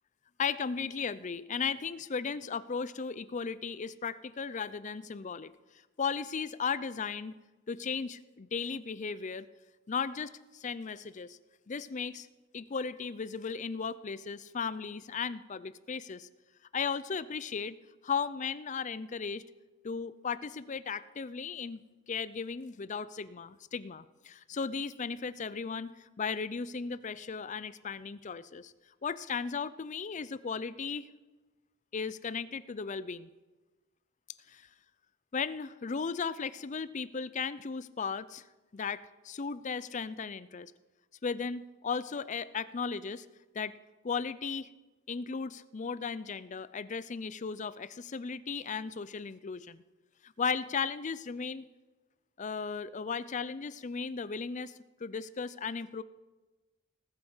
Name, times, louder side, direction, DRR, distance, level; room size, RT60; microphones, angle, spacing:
voice 1, 0.4-5.5 6.0-7.4 7.7-9.5 9.9-11.4 11.7-12.3 12.5-16.3 16.7-17.8 18.0-19.4 19.8-21.8 22.1-28.7 29.0-31.1 31.9-33.3 34.5-34.7 35.3-38.4 38.7-40.7 41.2-43.3 43.5-43.7 44.0-44.7 45.1-49.8 50.2-51.7 52.4-54.7 55.0-56.0, left 5 dB, 35° left, 16 dB, 0.5 m, -36 dB
19.5 x 7.9 x 5.6 m, 1.2 s
head